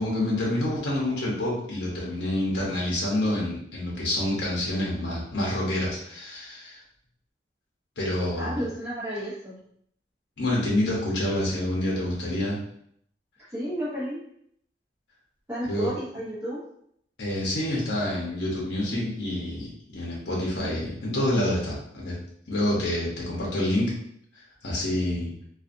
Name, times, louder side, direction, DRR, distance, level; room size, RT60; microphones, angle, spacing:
voice 1, 0.0-6.8 8.0-8.6 10.4-12.6 15.6-15.9 17.2-22.2 22.5-23.9 24.6-25.3, left 1 dB, 70° left, -4 dB, 0.8 m, -27 dB
voice 2, 8.3-9.5 13.5-14.2 15.5-16.6, equal, 15° right, -13 dB, 1.0 m, -31 dB
2.5 x 2.5 x 2.5 m, 0.68 s
head